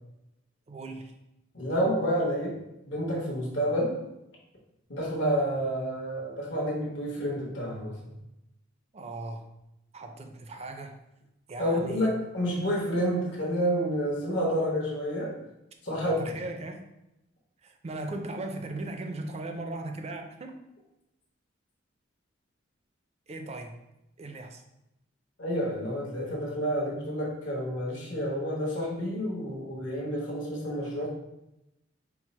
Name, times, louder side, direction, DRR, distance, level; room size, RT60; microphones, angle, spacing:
voice 1, 0.7-1.1 8.9-9.4 9.9-11.0 11.5-12.1 15.9-16.8 17.6-20.5 23.3-23.7 24.2-24.6, right 2 dB, 35° right, 5 dB, 0.4 m, -38 dB
voice 2, 1.5-2.6 2.8-4.0 4.9-8.0 11.6-15.4 15.8-16.3 25.4-31.1, equal, 65° left, -4 dB, 1.2 m, -29 dB
4.5 x 2.0 x 4.2 m, 0.88 s
head